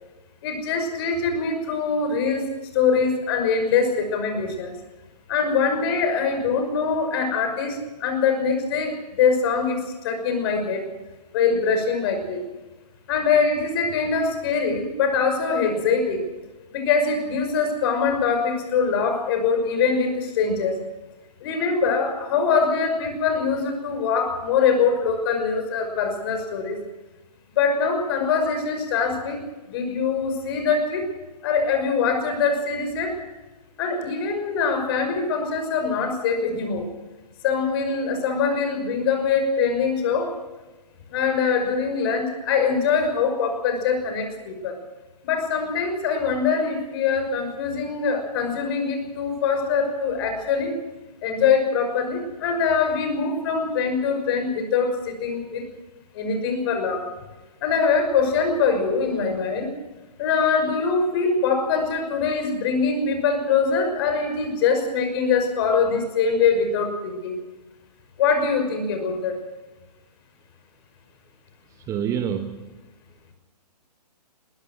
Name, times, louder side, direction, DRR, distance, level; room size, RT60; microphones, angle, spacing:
voice 1, 0.4-2.4 2.7-4.7 5.3-10.8 11.3-12.4 13.1-16.2 16.7-20.7 21.4-26.8 27.5-29.4 29.7-31.0 31.4-33.2 33.8-36.9 37.4-40.3 41.1-44.8 45.2-50.8 51.2-55.6 56.1-57.0 57.6-59.7 60.2-67.4 68.2-69.3, left 5 dB, 35° left, 6 dB, 5.8 m, -23 dB
voice 2, 71.7-72.7, right 8 dB, 15° right, 9 dB, 1.0 m, -28 dB
21.5 x 19.5 x 6.3 m, 1.2 s
figure-of-eight pair, 135°, 21 cm